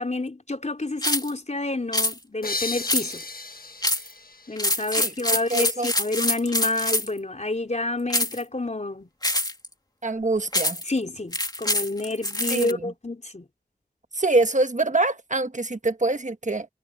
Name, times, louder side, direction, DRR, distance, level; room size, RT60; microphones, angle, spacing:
voice 1, 0.0-3.2 4.5-9.1 10.9-13.5, left 2 dB, 45° left, 3.9 m, -29 dB
sound 1, 1.0-1.3 1.9-2.1 2.9-3.3 3.8-4.1 4.6-7.2 8.1-8.4 9.2-9.7 10.5-10.9 11.3-12.7, left 1 dB, 25° left, 2.6 m, -25 dB
sound 2, 2.4-5.8, left 3 dB, 70° left, 1.6 m, -36 dB
voice 2, 5.5-5.9 10.0-10.8 12.5-12.9 14.2-16.7, right 2 dB, 50° right, 1.3 m, -24 dB
wide cardioid pair, 55°, 16 cm